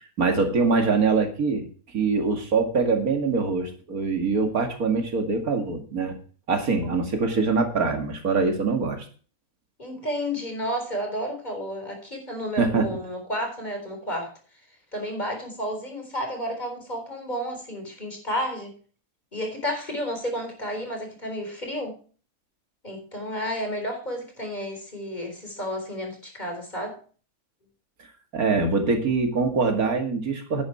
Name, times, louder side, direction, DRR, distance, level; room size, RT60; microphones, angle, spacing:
voice 1, 0.0-1.7 1.9-6.2 6.5-9.0 12.6-12.9 28.3-30.6, right 4 dB, 90° right, 5 dB, 2.5 m, -23 dB
voice 2, 9.8-14.3 14.9-18.7 19.3-22.0 22.8-27.0, equal, 30° left, 3 dB, 4.0 m, -31 dB
10.5 x 9.6 x 4.4 m, 0.39 s
omnidirectional pair, 1.5 m